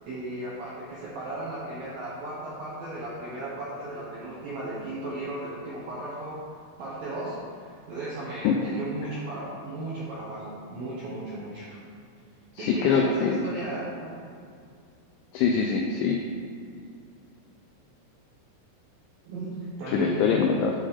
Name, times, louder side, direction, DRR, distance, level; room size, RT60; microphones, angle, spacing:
voice 1, 0.0-6.4 6.8-11.8 12.6-14.1 19.3-20.4, right 2 dB, 80° right, -7 dB, 2.1 m, -35 dB
voice 2, 12.6-13.4 15.3-16.2 19.9-20.7, left 6 dB, 85° left, 2 dB, 2.6 m, -23 dB
9.4 x 6.3 x 3.8 m, 2.4 s
omnidirectional pair, 5.9 m